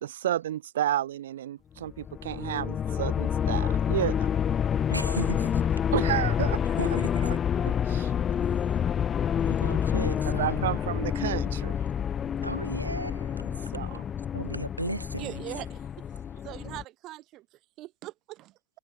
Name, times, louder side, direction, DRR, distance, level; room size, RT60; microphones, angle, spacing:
voice 1, 0.0-4.3 5.9-8.1 10.0-11.8 13.7-14.0, right 12 dB, 60° right, 1.2 m, -32 dB
sound 1, 1.9-16.8, left 8 dB, 25° left, 1.9 m, -28 dB
voice 2, 4.9-5.7 6.8-7.1 9.4-10.7 12.4-13.5 14.3-15.3, right 1 dB, 85° right, 4.3 m, -35 dB
voice 3, 15.2-16.1 16.4-18.8, right 17 dB, 35° right, 6.1 m, -42 dB
figure-of-eight pair, 90°, 0 cm